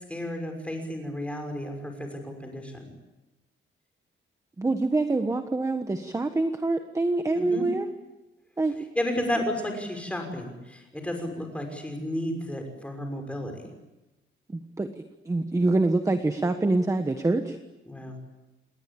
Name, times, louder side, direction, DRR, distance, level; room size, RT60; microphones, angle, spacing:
voice 1, 0.1-2.9 7.3-7.7 9.0-13.7 17.9-18.2, left 1 dB, 5° left, 4 dB, 6.1 m, -32 dB
voice 2, 4.6-7.9 8.6-8.7 14.5-17.6, right 2 dB, 15° right, 7 dB, 1.4 m, -25 dB
28.5 x 20.5 x 8.8 m, 1.1 s
wide cardioid pair, 165°, 21 cm